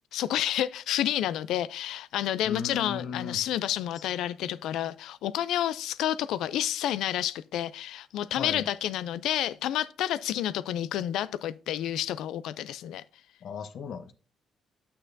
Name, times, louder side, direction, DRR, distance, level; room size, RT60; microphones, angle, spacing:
voice 1, 0.1-13.0, left 12 dB, 85° left, 0.4 m, -30 dB
voice 2, 2.4-3.4 3.9-4.1 8.4-8.7 13.4-14.1, left 6 dB, 65° left, 0.9 m, -36 dB
10.0 x 8.6 x 2.6 m
cardioid pair, 90°, 0 cm